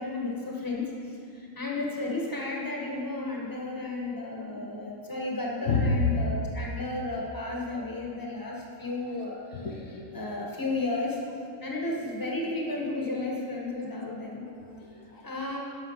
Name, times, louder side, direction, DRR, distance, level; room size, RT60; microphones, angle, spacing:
voice 1, 0.0-9.7 10.1-11.2 11.6-14.4 15.2-15.6, left 2 dB, 15° left, -2 dB, 1.5 m, -33 dB
voice 2, 4.2-4.7 5.6-6.3 9.6-10.1 14.5-15.3, left 3 dB, 70° left, 1 dB, 1.2 m, -30 dB
11.0 x 6.5 x 5.8 m, 2.5 s
omnidirectional pair, 1.4 m